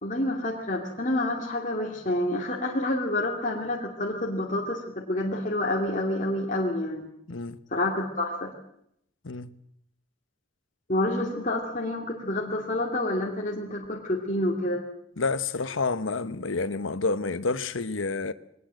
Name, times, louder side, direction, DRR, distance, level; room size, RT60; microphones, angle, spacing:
voice 1, 0.0-7.1 7.7-8.5 10.9-14.8, left 1 dB, 40° left, 2.7 m, -28 dB
voice 2, 15.2-18.3, left 3 dB, 75° left, 1.1 m, -29 dB
22.5 x 19.5 x 7.7 m
head